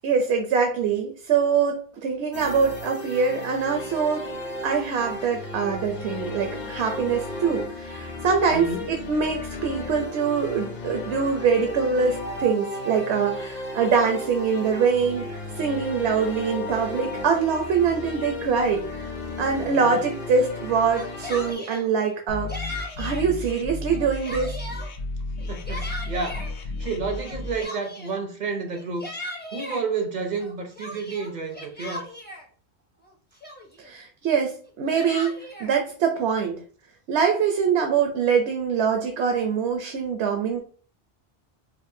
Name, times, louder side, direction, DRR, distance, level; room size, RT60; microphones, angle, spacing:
voice 1, 0.0-4.3 4.6-19.1 19.4-22.5 23.0-24.6 33.8-36.6 37.1-40.6, right 6 dB, 80° right, 0.9 m, -24 dB
sound 1, 2.3-21.5, left 2 dB, 45° left, 0.7 m, -35 dB
voice 2, 8.5-8.9 19.6-20.0 25.5-29.1 29.5-32.1, right 4 dB, 50° right, 0.6 m, -31 dB
Yell, 20.8-21.9 22.5-23.3 23.8-24.9 25.4-26.5 27.2-28.2 28.7-29.8 30.4-32.4 33.0-33.1 33.4-33.9 34.6-35.7, left 1 dB, 10° left, 0.5 m, -37 dB
sound 2, 22.3-27.6, left 2 dB, 80° left, 0.9 m, -33 dB
5.0 x 2.1 x 2.6 m
omnidirectional pair, 1.1 m